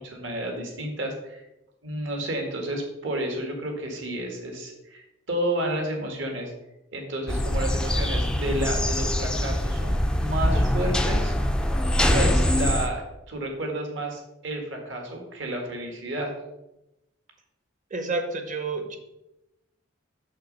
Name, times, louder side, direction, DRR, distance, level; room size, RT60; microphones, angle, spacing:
voice 1, 0.0-1.4 1.8-6.5 6.9-11.3 12.1-16.3, right 1 dB, 60° right, 2 dB, 1.9 m, -31 dB
sound 1, 7.3-12.9, left 1 dB, 5° left, 0.4 m, -23 dB
voice 2, 17.9-19.0, right 3 dB, 35° right, 6 dB, 1.0 m, -29 dB
6.6 x 6.5 x 5.3 m, 0.92 s
head